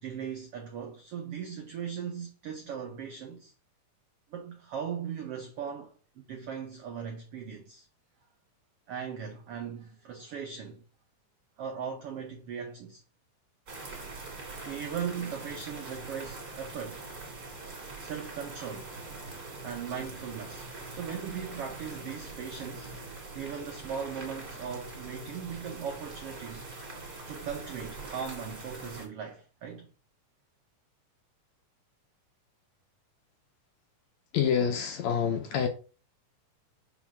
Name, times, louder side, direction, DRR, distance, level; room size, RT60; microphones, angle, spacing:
voice 1, 0.0-3.5 4.3-5.9 6.3-7.9 8.9-10.8 11.6-13.0 14.6-17.1 18.0-18.9 19.6-22.9 23.3-26.7 27.3-29.9, right 7 dB, 80° right, 1.3 m, -38 dB
sound 1, 13.7-29.1, right 3 dB, 30° right, 2.4 m, -43 dB
voice 2, 34.3-35.7, left 7 dB, 70° left, 1.8 m, -27 dB
6.0 x 4.0 x 6.0 m
omnidirectional pair, 3.9 m